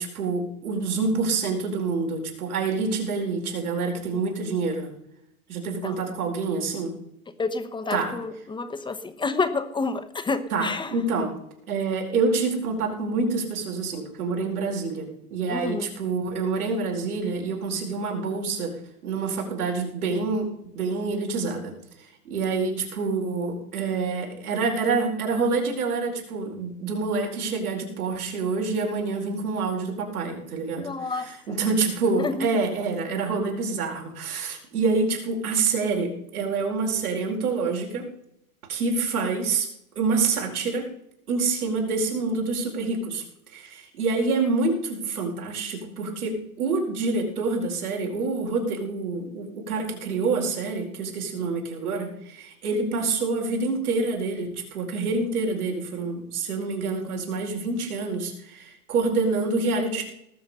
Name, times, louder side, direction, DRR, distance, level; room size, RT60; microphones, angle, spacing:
voice 1, 0.0-4.9 5.5-6.9 7.9-8.1 10.5-11.4 11.7-18.7 19.0-38.1 38.7-39.7 40.0-40.9 41.3-43.2 43.5-60.0, right 4 dB, 80° right, 1 dB, 4.8 m, -27 dB
voice 2, 7.4-11.1 15.5-16.0 30.8-31.6 32.1-32.7, left 3 dB, 10° left, 11 dB, 1.0 m, -29 dB
18.5 x 7.3 x 5.6 m, 0.75 s
hypercardioid pair, 110°, 44 cm